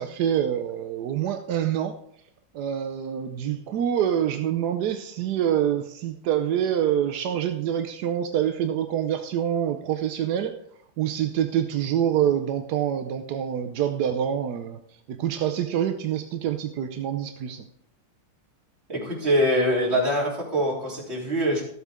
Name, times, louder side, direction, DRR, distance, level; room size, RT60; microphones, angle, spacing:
voice 1, 0.0-2.0 2.5-10.6 11.0-14.8 15.1-17.6, right 10 dB, 70° right, 7 dB, 1.0 m, -26 dB
voice 2, 18.9-21.6, equal, 30° right, -4 dB, 3.6 m, -24 dB
13.5 x 8.2 x 3.6 m, 0.70 s
omnidirectional pair, 2.3 m